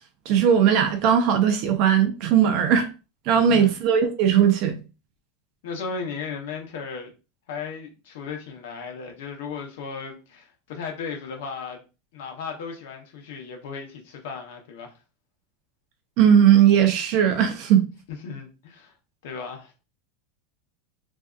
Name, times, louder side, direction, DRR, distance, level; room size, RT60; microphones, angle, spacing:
voice 1, 0.3-2.9 3.3-4.8 16.2-17.9, right 8 dB, 45° right, 0.5 m, -18 dB
voice 2, 3.3-3.7 5.6-7.1 7.5-11.8 12.1-15.0 18.1-18.9 19.2-19.7, left 5 dB, 70° left, 0.8 m, -35 dB
2.6 x 2.4 x 2.3 m
supercardioid pair, 165°, 0 cm